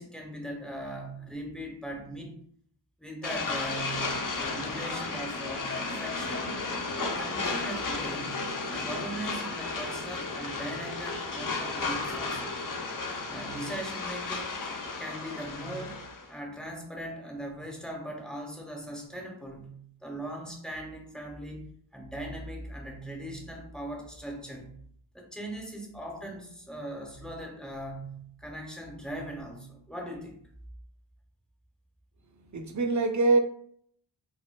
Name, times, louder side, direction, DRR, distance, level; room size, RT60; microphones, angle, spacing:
voice 1, 0.0-2.3 3.0-6.5 7.0-12.6 13.3-14.6 15.0-16.0 16.3-21.7 21.9-24.8 25.1-30.4, right 1 dB, ahead, 0.7 m, -40 dB
sound 1, 3.2-16.3, left 3 dB, 45° left, 0.5 m, -34 dB
voice 2, 32.3-33.4, right 3 dB, 40° right, 0.4 m, -25 dB
4.2 x 2.1 x 2.2 m
wide cardioid pair, 55°, 49 cm